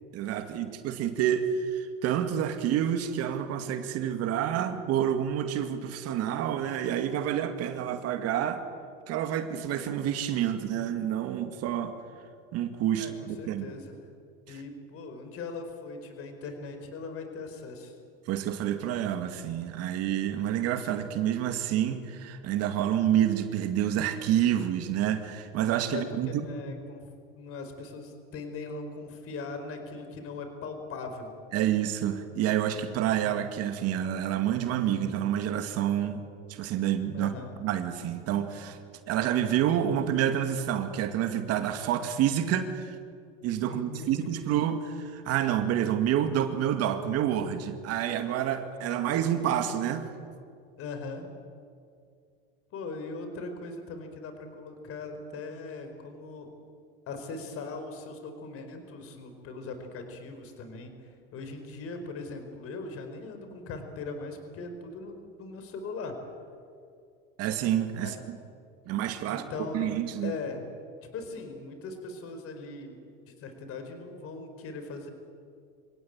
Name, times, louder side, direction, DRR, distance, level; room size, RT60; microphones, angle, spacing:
voice 1, 0.1-8.6 9.1-11.9 12.5-13.7 14.5-14.6 18.3-26.3 31.5-37.3 37.6-38.8 39.1-43.0 43.4-50.1 67.4-68.4 68.9-69.4 69.7-70.3, right 10 dB, 55° right, 8 dB, 2.2 m, -28 dB
voice 2, 12.9-14.1 14.5-18.0 25.9-27.0 27.3-31.3 37.1-37.5 43.6-44.3 50.8-51.3 52.7-56.5 57.1-66.1 68.0-68.2 69.3-70.6 71.1-73.0 73.3-75.1, left 3 dB, 50° left, 6 dB, 4.7 m, -40 dB
26.0 x 17.5 x 8.9 m, 2.3 s
supercardioid pair, 100°, 29 cm